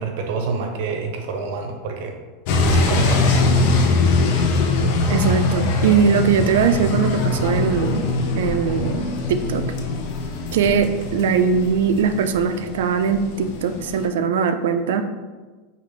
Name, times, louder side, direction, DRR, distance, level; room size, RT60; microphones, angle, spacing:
voice 1, 0.0-2.1 2.7-3.7, right 4 dB, 65° right, 4 dB, 0.7 m, -27 dB
sound 1, 2.5-14.1, left 3 dB, 55° left, 0.5 m, -22 dB
voice 2, 5.1-8.1 8.4-9.7 10.5-15.1, right 6 dB, 85° right, 9 dB, 0.3 m, -20 dB
5.0 x 2.4 x 3.2 m, 1.3 s
supercardioid pair, 140°, 0 cm